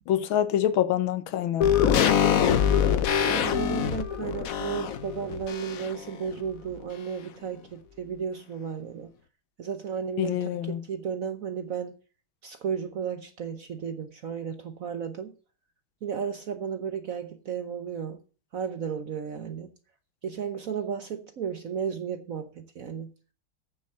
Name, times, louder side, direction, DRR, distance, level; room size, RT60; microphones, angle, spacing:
voice 1, 0.1-2.2 10.2-10.8, left 11 dB, 80° left, 1.6 m, -26 dB
sound 1, 1.6-6.1 6.4-6.5, left 8 dB, 60° left, 0.9 m, -24 dB
voice 2, 3.3-9.1 9.6-12.0 12.4-15.3 16.0-18.2 18.5-19.7 20.2-23.1, right 7 dB, 55° right, 1.0 m, -34 dB
9.1 x 7.1 x 6.6 m
omnidirectional pair, 2.3 m